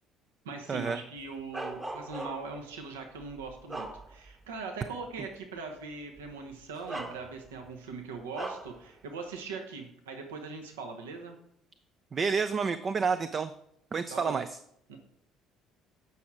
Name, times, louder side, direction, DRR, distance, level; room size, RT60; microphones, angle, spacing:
voice 1, 0.4-11.4 14.1-14.4 14.9-15.0, right 4 dB, 75° right, 3 dB, 1.0 m, -41 dB
Bark, 1.5-2.6 3.2-4.5 4.9-5.1 6.2-6.3 6.9-7.7 8.3-8.8, right 2 dB, 20° right, 1.1 m, -39 dB
voice 2, 12.1-13.5 13.9-14.5, right 5 dB, 35° right, 11 dB, 0.4 m, -29 dB
8.3 x 6.0 x 4.8 m, 0.72 s
figure-of-eight pair, 55°, 0 cm